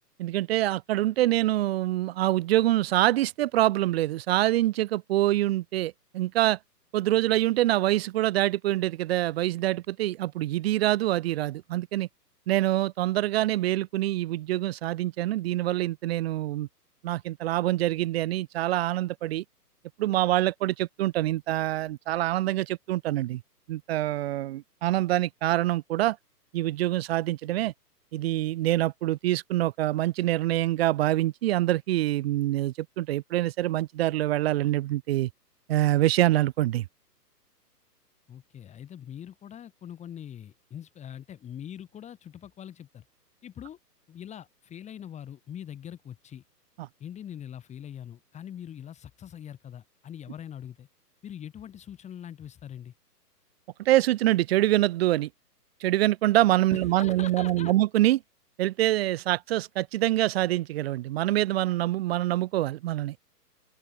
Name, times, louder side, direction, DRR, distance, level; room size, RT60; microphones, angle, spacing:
voice 1, 0.2-6.6 6.9-12.1 12.5-16.7 17.0-19.4 20.0-23.4 23.7-26.2 26.5-27.7 28.1-35.3 35.7-36.8 46.8-46.9 53.8-55.3 55.8-58.2 58.6-63.1, right 15 dB, 35° right, 2.9 m, -25 dB
voice 2, 38.3-43.0 43.4-43.8 44.1-46.4 47.0-50.9 51.2-52.9 56.7-57.7, left 9 dB, 15° left, 4.5 m, -42 dB
open air
figure-of-eight pair, 135°, 49 cm